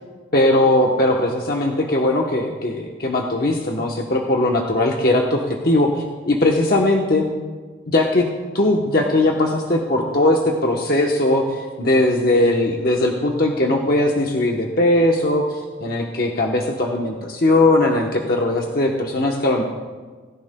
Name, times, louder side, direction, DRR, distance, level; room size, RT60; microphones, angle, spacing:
voice 1, 0.3-7.3 7.9-8.3 8.5-19.6, left 1 dB, 50° left, 1 dB, 0.9 m, -19 dB
17.5 x 16.0 x 2.2 m, 1.4 s
head